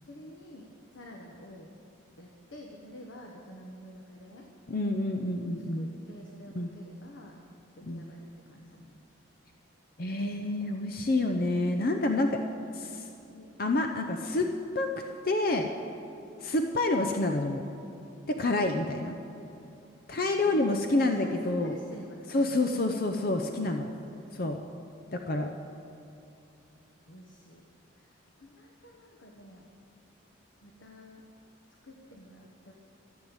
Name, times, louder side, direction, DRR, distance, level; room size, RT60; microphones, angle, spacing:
voice 1, 0.0-1.7 2.2-4.5 5.4-7.4 7.7-9.0 10.1-10.2 13.0-13.5 20.2-22.6 23.4-24.4 27.1-27.6 27.9-29.7 30.6-31.2 31.8-32.7, equal, 70° left, 0 dB, 1.3 m, -49 dB
voice 2, 4.7-5.9 6.6-6.7 7.9-8.0 10.0-12.4 12.7-13.1 13.6-14.9 15.2-15.7 16.4-17.7 18.3-19.2 20.1-21.7 22.3-23.9 24.3-24.6 25.1-25.5, left 2 dB, 45° left, 4 dB, 0.7 m, -28 dB
14.0 x 7.8 x 8.9 m, 2.9 s
head